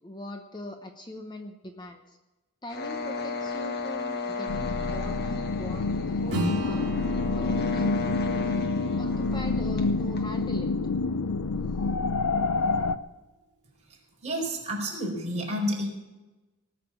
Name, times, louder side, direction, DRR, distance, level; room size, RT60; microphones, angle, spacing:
voice 1, 0.0-2.2 2.6-6.9 7.3-8.0 9.0-10.7, left 1 dB, 20° left, 5 dB, 0.9 m, -41 dB
Zap Radio, 2.7-10.5, left 4 dB, 50° left, 1.8 m, -34 dB
sound 1, 4.5-13.0, left 3 dB, 90° left, 0.6 m, -28 dB
Acoustic guitar / Strum, 6.3-11.1, right 1 dB, 55° right, 3.1 m, -37 dB
voice 2, 14.2-15.9, equal, 30° right, -1 dB, 4.4 m, -30 dB
18.5 x 6.7 x 8.5 m, 1.1 s
head